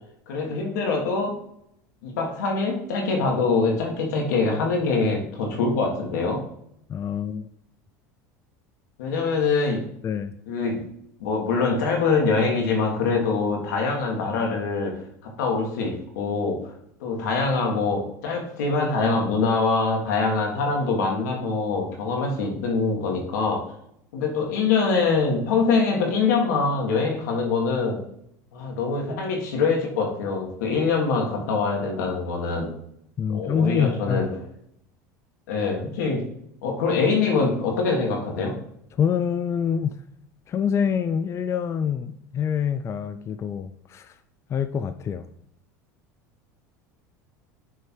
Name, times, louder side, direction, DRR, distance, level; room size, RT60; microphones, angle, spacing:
voice 1, 0.3-1.4 2.0-6.5 9.0-9.8 10.5-10.8 11.2-16.7 17.0-23.7 24.1-28.0 28.5-32.7 33.3-34.3 35.5-36.3 36.6-38.5, left 4 dB, 80° left, 1 dB, 1.6 m, -24 dB
voice 2, 6.9-7.5 10.0-10.4 33.2-34.3 39.0-40.0 40.5-44.1 44.5-45.3, left 7 dB, 30° left, 10 dB, 0.4 m, -26 dB
6.5 x 3.3 x 4.4 m, 0.72 s
hypercardioid pair, 90°, 9 cm